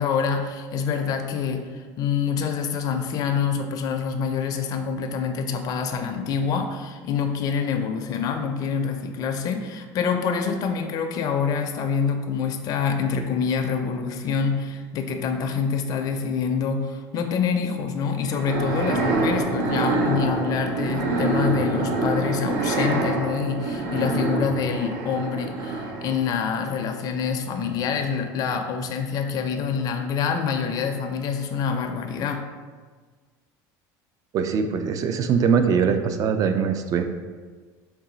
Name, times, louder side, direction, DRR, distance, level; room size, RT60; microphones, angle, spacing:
voice 1, 0.0-32.4, left 6 dB, 45° left, 5 dB, 0.4 m, -26 dB
sound 1, 18.3-26.3, right 2 dB, 80° right, 0.6 m, -26 dB
voice 2, 34.3-37.0, right 6 dB, 40° right, 8 dB, 0.3 m, -22 dB
3.9 x 2.3 x 3.8 m, 1.5 s
supercardioid pair, 120°, 9 cm